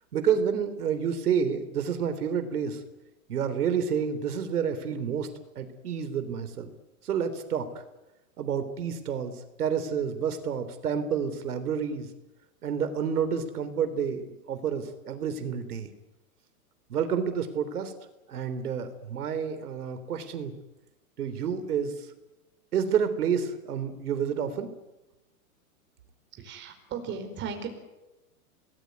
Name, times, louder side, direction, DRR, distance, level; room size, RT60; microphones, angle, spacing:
voice 1, 0.1-2.8 3.3-5.3 5.6-6.7 7.0-7.8 8.4-12.1 12.6-15.9 16.9-17.9 18.3-20.5 21.2-22.1 22.7-24.7, right 7 dB, 85° right, 10 dB, 3.6 m, -29 dB
voice 2, 26.3-27.7, right 6 dB, 25° right, 6 dB, 4.9 m, -36 dB
27.0 x 20.0 x 9.4 m, 1.0 s
hypercardioid pair, 150°, 44 cm